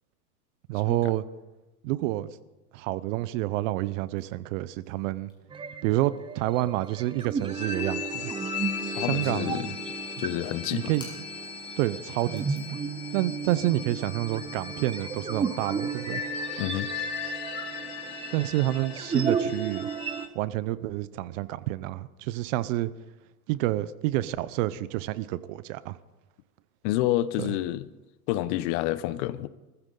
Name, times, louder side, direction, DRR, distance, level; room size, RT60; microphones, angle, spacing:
voice 1, 0.7-1.2 1.8-2.3 2.7-5.3 5.8-8.3 9.0-9.7 10.7-11.1 11.8-12.8 13.1-16.2 18.3-19.9 20.3-22.9 23.5-26.0 27.4-27.5, right 16 dB, 55° right, 16 dB, 0.8 m, -28 dB
sound 1, 3.9-4.9 5.2-8.7 9.0-9.5 10.4-11.7 12.0-15.3, left 2 dB, 10° left, 6.3 m, -54 dB
sound 2, 5.5-20.3, right 5 dB, 10° right, 0.6 m, -34 dB
sound 3, 7.4-20.3, left 8 dB, 75° left, 2.7 m, -38 dB
voice 2, 9.0-9.7 10.2-10.9 16.6-16.9 26.8-27.9 28.3-29.5, left 15 dB, 50° left, 16 dB, 0.9 m, -28 dB
24.5 x 15.0 x 3.9 m, 1.1 s
supercardioid pair, 125°, 46 cm